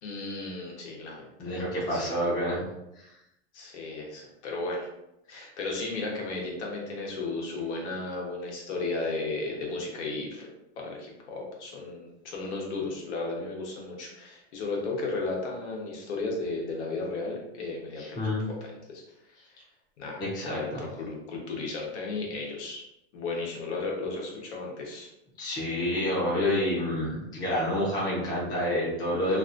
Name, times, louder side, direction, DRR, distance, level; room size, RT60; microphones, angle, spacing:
voice 1, 0.0-1.6 1.9-2.1 3.5-4.9 5.3-10.5 10.8-18.3 18.6-19.0 20.0-22.8 23.1-25.1, left 3 dB, 80° left, -1 dB, 1.0 m, -34 dB
voice 2, 1.4-2.6 3.0-3.1 5.3-5.4 18.0-18.5 20.2-20.8 25.4-29.4, left 1 dB, 10° left, -7 dB, 0.6 m, -28 dB
2.7 x 2.4 x 2.5 m, 0.87 s
supercardioid pair, 160°, 34 cm